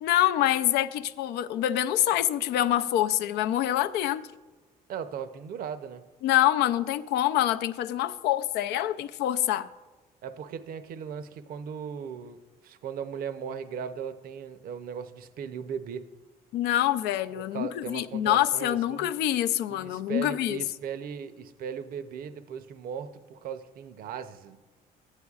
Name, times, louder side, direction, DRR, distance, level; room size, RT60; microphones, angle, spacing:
voice 1, 0.0-4.3 6.2-9.7 16.5-20.6, left 13 dB, 85° left, 0.4 m, -26 dB
voice 2, 4.9-6.0 10.2-16.1 17.3-19.1 19.7-24.6, right 7 dB, 60° right, 0.6 m, -37 dB
14.5 x 9.7 x 2.4 m
cardioid pair, 110°, 17 cm